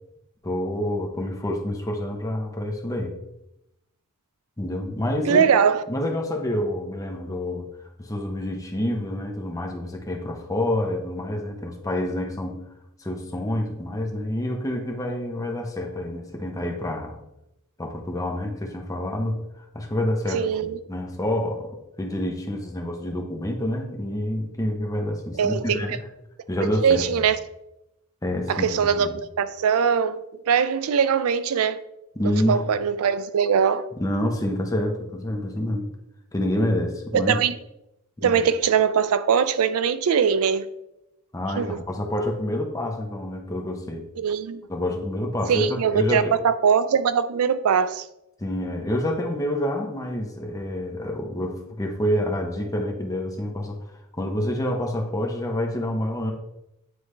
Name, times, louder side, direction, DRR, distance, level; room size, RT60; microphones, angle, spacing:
voice 1, 0.4-3.2 4.6-5.4 5.9-7.7 8.0-12.6 13.0-17.2 17.8-19.4 19.7-26.0 26.5-27.2 28.2-29.1 32.2-32.6 34.0-35.9 36.3-37.4 38.2-38.4 41.3-44.1 44.7-46.3 48.4-53.8 54.1-56.3, left 1 dB, 15° left, 0.8 m, -27 dB
voice 2, 5.3-5.8 20.3-20.8 25.4-25.8 26.8-27.4 28.5-29.1 29.4-31.8 32.2-33.9 37.1-37.5 38.2-40.7 41.6-41.8 44.2-44.6 45.5-48.0, right 7 dB, 70° right, 0.4 m, -21 dB
9.3 x 3.3 x 3.2 m
head